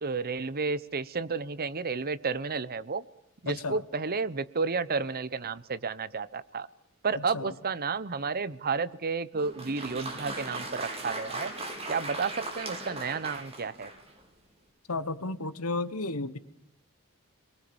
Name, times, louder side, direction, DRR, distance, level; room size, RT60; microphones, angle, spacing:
voice 1, 0.0-3.0 3.4-6.7 7.0-11.5 11.9-13.9, right 4 dB, 45° right, 16 dB, 0.9 m, -31 dB
voice 2, 3.5-3.8 7.1-7.5 14.9-16.4, left 2 dB, 85° left, 14 dB, 1.4 m, -33 dB
Applause, 9.3-14.2, right 2 dB, 30° right, 4.3 m, -38 dB
25.5 x 22.0 x 7.1 m, 0.73 s
head